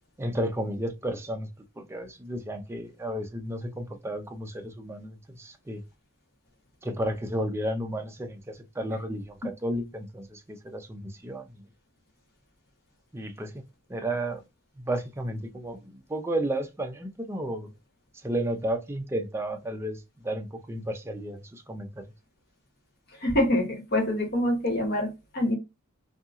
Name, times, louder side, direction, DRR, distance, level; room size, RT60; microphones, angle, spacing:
voice 1, 0.2-1.5 1.8-5.8 6.8-11.6 13.1-13.6 13.9-14.4 14.8-17.7 18.2-22.0, right 1 dB, 10° right, 0.4 m, -33 dB
voice 2, 23.2-25.1 25.3-25.6, left 1 dB, 50° left, 1.1 m, -25 dB
2.7 x 2.6 x 2.4 m
head